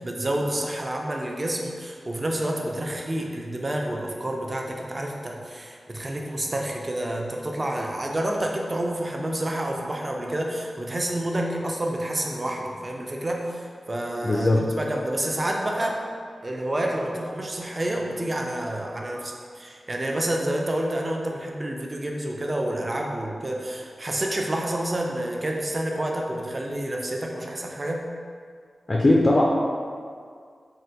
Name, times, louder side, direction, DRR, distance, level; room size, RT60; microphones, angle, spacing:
voice 1, 0.0-16.0 16.4-28.1, right 1 dB, 35° right, 0 dB, 0.4 m, -29 dB
voice 2, 14.2-14.6 28.9-29.4, left 2 dB, 40° left, -2 dB, 0.3 m, -19 dB
2.8 x 2.1 x 3.3 m, 2.1 s
cardioid pair, 60°, 0 cm